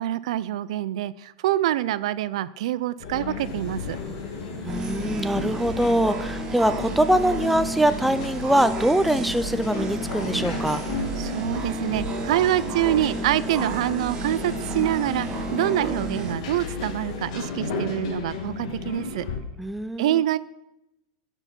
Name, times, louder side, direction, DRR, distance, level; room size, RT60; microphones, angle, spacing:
voice 1, 0.0-4.0 11.2-19.3 20.0-20.4, right 13 dB, 75° right, 17 dB, 0.4 m, -26 dB
sound 1, 3.0-19.4, left 4 dB, 70° left, 1.6 m, -34 dB
sound 2, 3.4-17.2, left 2 dB, 25° left, 1.4 m, -45 dB
voice 2, 4.6-10.8 19.6-20.2, right 1 dB, ahead, 10 dB, 0.3 m, -23 dB
sound 3, 4.7-16.3, right 3 dB, 20° right, 1.0 m, -32 dB
10.5 x 4.6 x 5.8 m, 0.89 s
supercardioid pair, 155°, 3 cm